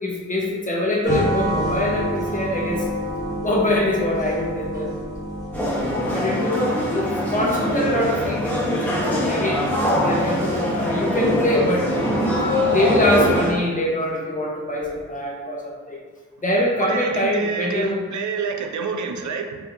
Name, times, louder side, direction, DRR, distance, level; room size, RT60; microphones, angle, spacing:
voice 1, 0.0-2.9 3.4-4.9 6.1-9.6 10.0-11.9 12.7-16.0 16.4-18.0, left 1 dB, 25° left, -2 dB, 0.9 m, -23 dB
sound 1, 1.0-6.2, equal, 10° right, 1.2 m, -28 dB
sound 2, 5.5-13.5, left 1 dB, 5° left, 1.1 m, -23 dB
voice 2, 16.8-19.6, right 5 dB, 75° right, 5 dB, 0.5 m, -28 dB
4.7 x 2.7 x 2.6 m, 1.4 s
cardioid pair, 60°, 29 cm